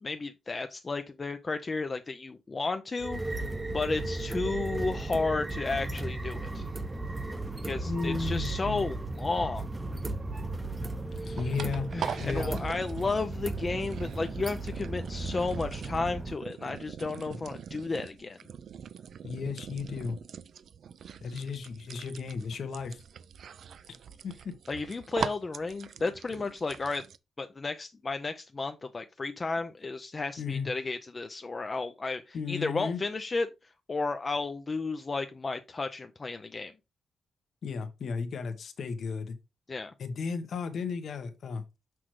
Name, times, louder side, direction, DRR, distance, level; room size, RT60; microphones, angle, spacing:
voice 1, 0.0-3.4 3.7-6.7 7.6-9.6 11.2-11.5 11.9-18.4 24.7-27.1 27.4-36.7 39.7-39.9, left 3 dB, 30° left, 0.4 m, -33 dB
sound 1, 3.0-16.3, right 2 dB, 20° right, 0.7 m, -35 dB
voice 2, 7.9-8.9 11.3-12.5 19.2-20.2 21.2-23.0 24.2-24.5 30.4-30.7 32.3-33.0 37.6-39.3 40.0-41.6, left 5 dB, 65° left, 1.1 m, -34 dB
sound 2, 11.2-27.2, right 7 dB, 70° right, 0.4 m, -42 dB
6.1 x 6.0 x 3.1 m
wide cardioid pair, 135°, 0 cm